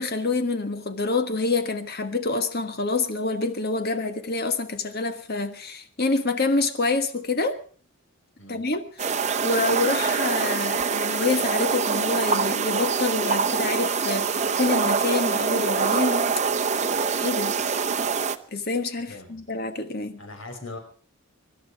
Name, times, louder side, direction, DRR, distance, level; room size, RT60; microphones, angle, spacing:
voice 1, 0.0-7.6 8.5-16.3 17.2-17.6 18.5-20.2, left 3 dB, 45° left, 1.5 m, -27 dB
sound 1, 9.0-18.4, right 5 dB, 35° right, 0.8 m, -25 dB
voice 2, 19.0-19.4 20.2-20.8, left 2 dB, 65° left, 5.2 m, -40 dB
24.5 x 12.0 x 4.8 m
head